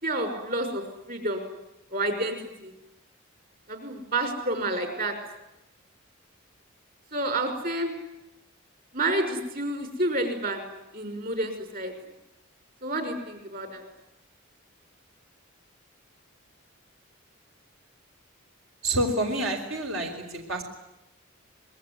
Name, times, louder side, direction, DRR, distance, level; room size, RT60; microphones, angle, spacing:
voice 1, 0.0-1.4 1.9-2.7 3.7-5.1 7.1-7.9 8.9-10.6 10.9-11.9 12.8-13.8, right 2 dB, 45° right, 7 dB, 5.8 m, -29 dB
voice 2, 18.8-20.2 20.5-20.6, right 1 dB, 75° right, 3 dB, 4.9 m, -27 dB
26.5 x 22.0 x 9.7 m, 0.90 s
head